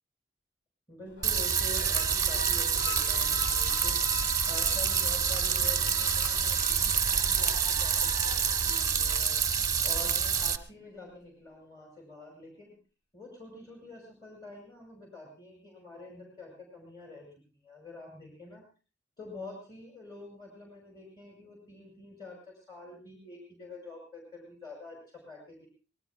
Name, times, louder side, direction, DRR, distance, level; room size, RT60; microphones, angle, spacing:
voice 1, 0.9-4.1 4.5-9.4 9.8-12.8 13.1-17.3 17.5-18.6 19.2-25.7, left 2 dB, 20° left, 0 dB, 5.7 m, -47 dB
sound 1, 1.1-10.5, left 3 dB, 70° left, 1.5 m, -43 dB
sound 2, 1.2-10.6, right 7 dB, 20° right, 0.9 m, -27 dB
25.5 x 19.5 x 2.3 m, 0.35 s
head